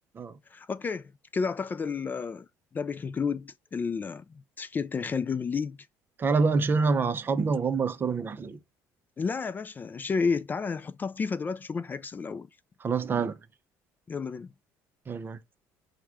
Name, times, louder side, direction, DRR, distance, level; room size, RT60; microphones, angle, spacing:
voice 1, 0.5-2.5 2.7-4.2 4.6-5.8 9.2-12.5 14.1-14.5, left 5 dB, 25° left, 0.3 m, -31 dB
voice 2, 6.2-8.6 12.8-13.4 15.1-15.4, right 4 dB, 30° right, 0.5 m, -26 dB
4.6 x 2.2 x 4.7 m
cardioid pair, 100°, 7 cm